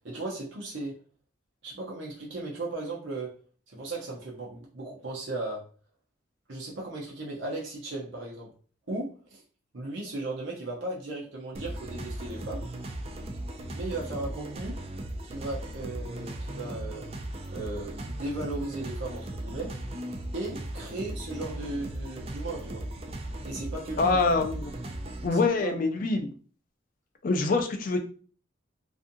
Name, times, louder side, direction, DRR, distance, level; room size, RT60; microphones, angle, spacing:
voice 1, 0.0-0.9 1.6-3.3 3.7-5.6 6.5-8.5 8.9-9.4 9.7-12.7 13.7-14.7 15.2-17.0 17.5-19.7 20.3-22.8 23.4-24.2 25.3-25.8, right 2 dB, 70° right, -4 dB, 0.7 m, -36 dB
sound 1, 11.5-25.3, right 1 dB, 30° right, 0.3 m, -37 dB
voice 2, 24.0-24.7 25.2-26.3 27.2-28.0, left 3 dB, 45° left, 5 dB, 0.4 m, -25 dB
2.6 x 2.4 x 2.6 m, 0.41 s
head